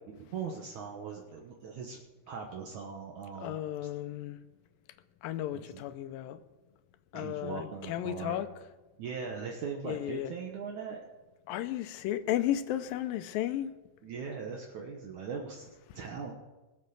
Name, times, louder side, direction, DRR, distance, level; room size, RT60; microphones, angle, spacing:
voice 1, 0.1-2.0 2.3-3.6 5.5-5.8 7.1-8.4 9.0-11.0 14.0-16.3, right 6 dB, 65° right, 2.4 m, -40 dB
voice 2, 3.4-4.4 5.2-6.4 7.1-8.5 9.8-10.3 11.5-13.7 15.9-16.0, left 12 dB, 90° left, 2.5 m, -34 dB
20.0 x 7.1 x 6.6 m
omnidirectional pair, 3.9 m